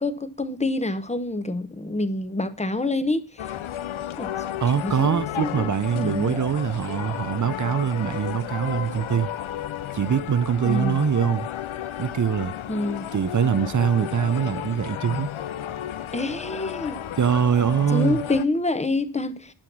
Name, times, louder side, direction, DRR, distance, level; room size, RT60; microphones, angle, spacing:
voice 1, 0.0-3.5 4.2-4.3 4.8-6.4 10.6-11.0 12.7-13.1 16.1-17.0 17.9-19.5, left 2 dB, 15° left, 0.8 m, -27 dB
sound 1, 3.4-18.4, left 10 dB, 90° left, 0.6 m, -33 dB
voice 2, 4.6-9.3 9.9-11.5 12.0-12.5 13.1-15.3 17.2-18.2, right 8 dB, 40° right, 0.4 m, -23 dB
11.5 x 5.8 x 5.9 m
wide cardioid pair, 80°, 47 cm